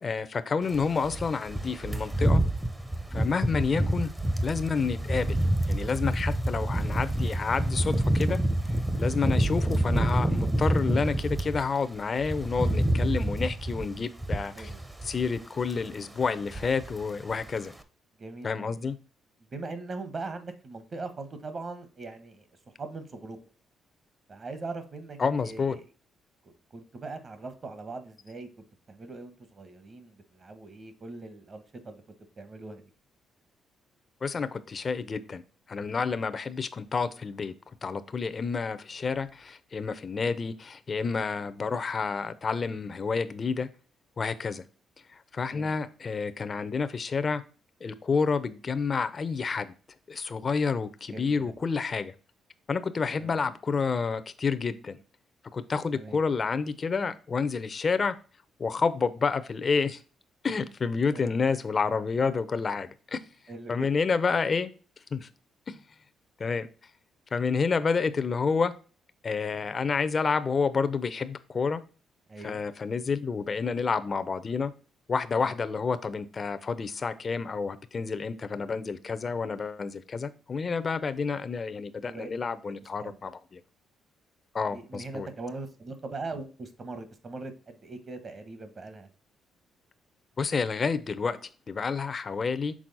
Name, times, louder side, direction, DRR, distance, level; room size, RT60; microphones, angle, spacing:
voice 1, 0.0-2.4 3.1-4.1 4.4-5.4 5.7-8.4 9.0-14.7 15.0-17.7 18.4-19.0 25.2-25.8 34.2-35.4 35.7-37.5 37.8-43.7 44.2-44.7 45.1-47.4 47.8-49.7 50.1-52.1 52.7-55.0 55.5-58.2 58.6-60.0 60.4-63.2 63.7-64.7 65.1-65.3 65.7-65.8 66.4-66.7 67.3-68.7 69.2-71.8 72.4-74.7 75.1-83.6 84.5-85.3 90.4-91.4 91.7-92.7, left 5 dB, 40° left, 12 dB, 0.6 m, -29 dB
sound 1, 0.7-11.6 12.0-15.4 15.6-15.9 16.2-17.0 17.3-17.5, right 1 dB, 10° right, 0.8 m, -28 dB
voice 2, 18.2-18.9 19.5-22.5 22.8-23.4 24.3-25.8 26.4-28.5 28.9-32.0 32.4-32.8 45.5-45.7 51.1-51.5 53.2-53.4 55.9-56.2 61.1-61.3 63.5-63.9 72.3-72.6 75.4-75.5 82.0-82.3 82.7-82.8 83.0-83.1 84.7-89.1, right 3 dB, 40° right, 10 dB, 1.2 m, -41 dB
6.2 x 4.1 x 4.0 m, 0.38 s
cardioid pair, 90°, 0 cm